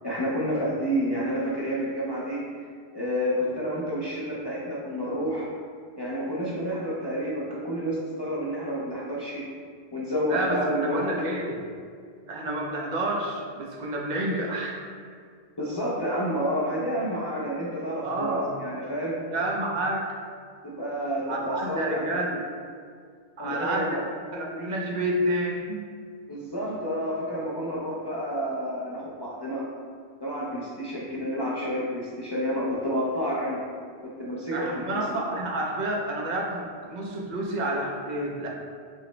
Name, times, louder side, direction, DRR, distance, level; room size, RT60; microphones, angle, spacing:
voice 1, 0.0-2.4 2.9-5.5 6.0-9.5 9.9-11.1 15.6-19.2 20.6-22.1 23.4-23.9 26.3-29.7 30.2-33.6 34.0-35.0, equal, 45° left, -7 dB, 0.3 m, -29 dB
voice 2, 10.3-11.6 12.3-14.8 18.0-18.6 19.3-20.1 21.3-22.4 23.4-24.0 24.3-25.8 34.5-38.5, right 1 dB, 55° right, -1 dB, 0.5 m, -29 dB
5.5 x 2.1 x 3.0 m, 2.1 s
omnidirectional pair, 1.1 m